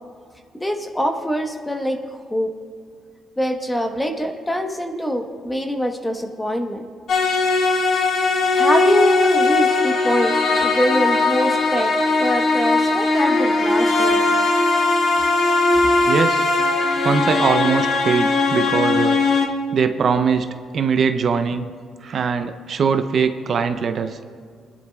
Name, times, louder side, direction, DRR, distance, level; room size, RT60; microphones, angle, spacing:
voice 1, 0.5-2.0 2.3-2.5 3.4-6.8 8.5-11.9 12.2-14.3, equal, 10° left, 5 dB, 1.1 m, -24 dB
sound 1, 7.1-19.5, left 3 dB, 60° left, 1.2 m, -19 dB
voice 2, 16.1-16.5 17.0-19.2 19.7-20.5 20.7-21.7 22.0-24.2, right 6 dB, 55° right, 8 dB, 0.6 m, -21 dB
21.0 x 11.0 x 2.4 m, 2.1 s
cardioid pair, 90°, 0 cm